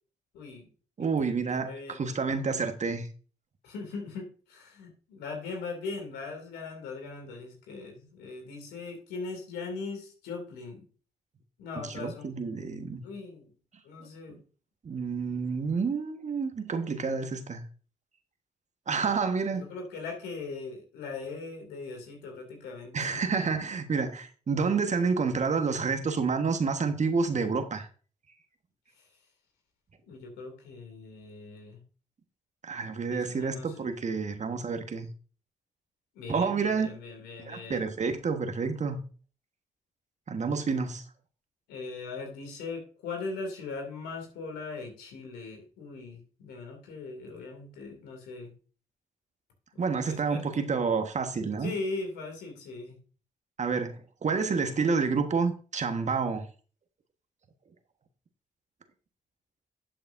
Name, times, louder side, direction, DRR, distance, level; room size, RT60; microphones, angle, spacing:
voice 1, 0.3-0.7 1.0-2.0 3.6-10.9 11.6-13.5 13.8-14.4 19.5-23.2 29.0-29.1 30.0-31.8 33.1-33.9 36.1-37.9 41.7-48.5 49.7-50.7 51.6-53.0, left 4 dB, 75° left, 2.7 m, -40 dB
voice 2, 1.0-3.1 11.9-13.0 14.8-17.6 18.9-19.6 22.9-27.9 32.6-35.1 36.3-37.0 37.5-39.0 40.3-41.0 49.8-51.7 53.6-56.5, right 5 dB, 45° right, 1.4 m, -29 dB
11.5 x 7.5 x 2.6 m
hypercardioid pair, 45°, 17 cm